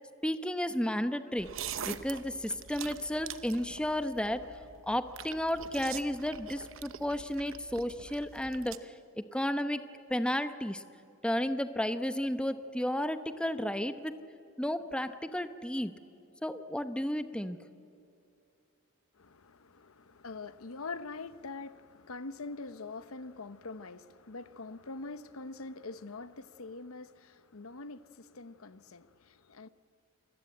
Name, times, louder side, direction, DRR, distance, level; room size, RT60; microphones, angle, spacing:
voice 1, 0.2-1.5 1.9-4.4 4.9-9.8 10.1-10.8 11.2-14.1 14.6-15.9 16.4-17.6, left 1 dB, 5° left, 0.8 m, -33 dB
sound 1, 1.4-8.8, right 8 dB, 65° right, 0.9 m, -44 dB
voice 2, 19.2-29.7, left 3 dB, 80° left, 0.9 m, -44 dB
28.0 x 20.5 x 8.6 m
head